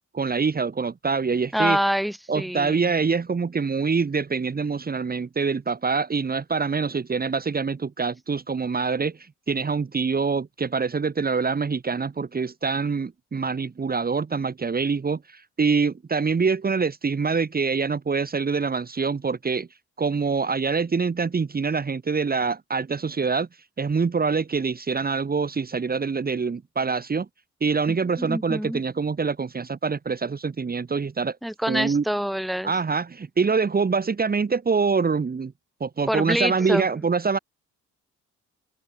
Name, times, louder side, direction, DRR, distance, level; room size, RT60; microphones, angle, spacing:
voice 1, 0.1-1.8 2.3-19.7 20.0-23.5 23.8-27.3 27.6-31.4 31.7-32.0 32.6-35.5 35.8-37.4, right 5 dB, 30° right, 2.1 m, -25 dB
voice 2, 1.5-2.9 27.9-28.8 31.4-32.7 36.1-36.9, equal, ahead, 2.7 m, -26 dB
cardioid pair, 90°, 30 cm